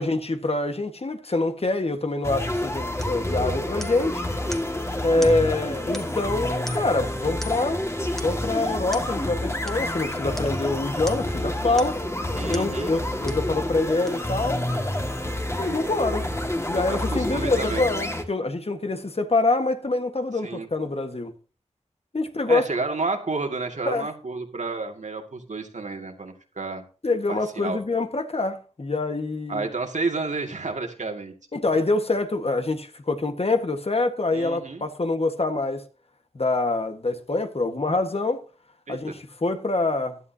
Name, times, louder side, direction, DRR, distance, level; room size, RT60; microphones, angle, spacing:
voice 1, 0.0-4.3 5.0-7.8 8.1-12.0 12.5-14.6 15.5-16.3 16.7-21.3 22.1-22.6 23.9-24.1 27.0-29.7 31.5-35.8 36.3-38.4 38.9-40.2, left 2 dB, 55° left, 1.6 m, -25 dB
sound 1, 2.2-18.2, left 1 dB, 20° left, 2.0 m, -28 dB
sound 2, 3.0-3.2 3.8-4.1 4.5-4.7 5.2-5.4 5.9-6.3 6.7-7.0 7.4-7.7 8.2-8.4 8.9-9.1 9.7-9.8 10.4-10.6 11.1-11.3 11.8-12.1 12.5-12.7 13.3-13.5 14.1-14.2, equal, 5° left, 1.7 m, -40 dB
voice 2, 12.4-13.0 16.7-17.9 20.4-20.7 22.5-26.8 27.3-27.8 29.5-31.3 34.3-34.8 38.9-39.2, right 3 dB, 75° right, 2.3 m, -31 dB
16.0 x 11.5 x 2.8 m
wide cardioid pair, 45°, 12 cm